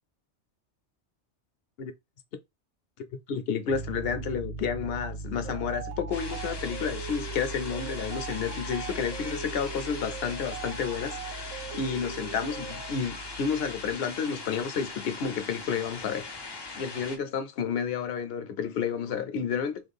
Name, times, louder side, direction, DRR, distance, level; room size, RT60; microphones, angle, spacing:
voice 1, 3.0-16.3 16.8-19.8, left 6 dB, 65° left, 0.8 m, -31 dB
Piano, 3.7-13.9, right 2 dB, 60° right, 0.8 m, -40 dB
sound 1, 5.4-12.9, right 8 dB, 90° right, 1.0 m, -42 dB
sound 2, 6.1-17.2, left 3 dB, 35° left, 0.4 m, -40 dB
3.2 x 2.3 x 3.4 m
omnidirectional pair, 1.2 m